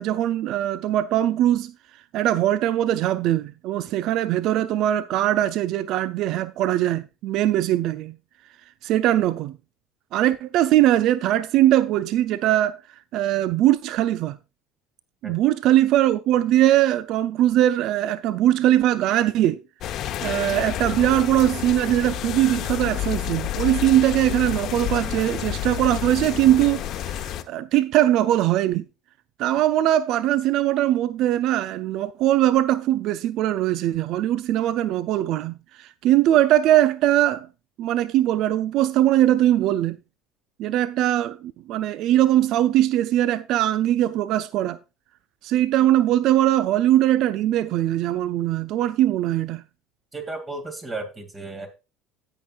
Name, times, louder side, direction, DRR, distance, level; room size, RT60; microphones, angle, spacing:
voice 1, 0.0-1.7 2.1-8.1 8.8-9.6 10.1-12.8 13.1-14.4 15.2-19.6 20.2-28.8 29.4-37.5 37.8-40.0 40.6-44.8 45.4-49.6, right 13 dB, 60° right, 0.4 m, -21 dB
sound 1, 19.8-27.4, left 12 dB, 55° left, 0.8 m, -29 dB
voice 2, 50.1-51.7, right 3 dB, 25° right, 2.3 m, -34 dB
17.0 x 5.7 x 2.4 m
hypercardioid pair, 65°, 0 cm